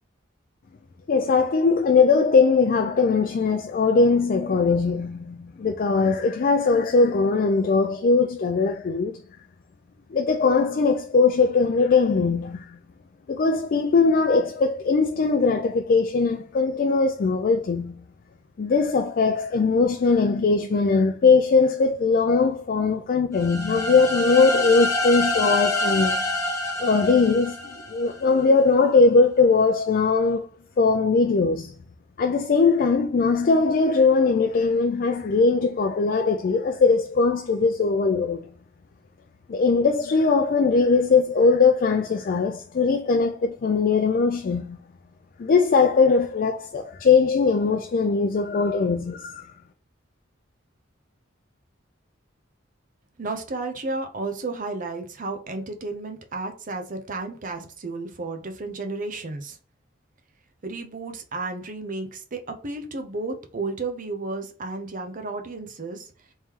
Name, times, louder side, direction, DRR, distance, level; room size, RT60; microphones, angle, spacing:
voice 1, 1.1-9.1 10.1-12.8 13.3-18.0 18.6-26.2 26.8-30.5 30.8-31.7 32.2-38.5 39.5-44.8 45.4-49.5, left 4 dB, 45° left, 0.4 m, -20 dB
sound 1, 23.3-28.2, left 2 dB, 15° left, 0.8 m, -26 dB
voice 2, 53.2-59.6 60.6-66.1, right 3 dB, 40° right, 0.6 m, -32 dB
3.6 x 3.1 x 2.9 m
head